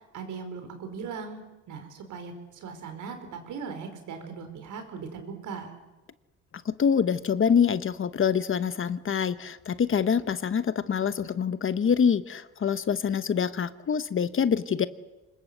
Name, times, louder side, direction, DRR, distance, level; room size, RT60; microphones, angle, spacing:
voice 1, 0.1-1.4 1.7-5.7, right 5 dB, 80° right, 7 dB, 4.7 m, -39 dB
voice 2, 6.6-14.9, left 7 dB, 45° left, 14 dB, 1.1 m, -25 dB
25.0 x 21.0 x 8.1 m, 1.1 s
cardioid pair, 90°, 30 cm